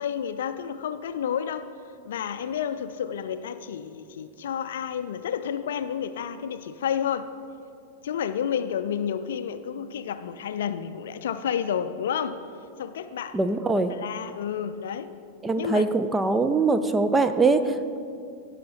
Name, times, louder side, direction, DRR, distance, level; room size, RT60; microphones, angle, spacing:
voice 1, 0.0-1.7 2.0-7.3 8.0-12.4 12.8-13.4 13.7-15.1 15.6-15.9, left 8 dB, 60° left, 11 dB, 0.4 m, -30 dB
voice 2, 13.3-13.9 15.4-18.0, right 3 dB, 15° right, 10 dB, 0.5 m, -22 dB
16.5 x 5.8 x 4.3 m, 2.5 s
figure-of-eight pair, 90°, 0 cm